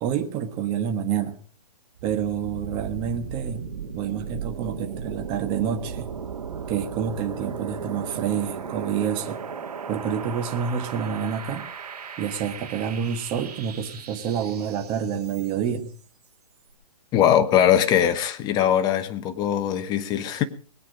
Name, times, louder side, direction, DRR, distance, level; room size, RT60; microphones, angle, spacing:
voice 1, 0.0-1.4 2.0-3.6 3.9-6.1 6.7-9.4 9.9-11.7 12.2-15.9, right 8 dB, 25° right, 1.4 m, -28 dB
sound 1, 2.0-15.8, right 6 dB, 70° right, 2.9 m, -36 dB
voice 2, 17.1-20.4, left 10 dB, 20° left, 1.0 m, -21 dB
20.5 x 8.8 x 5.1 m
hypercardioid pair, 145°, 20 cm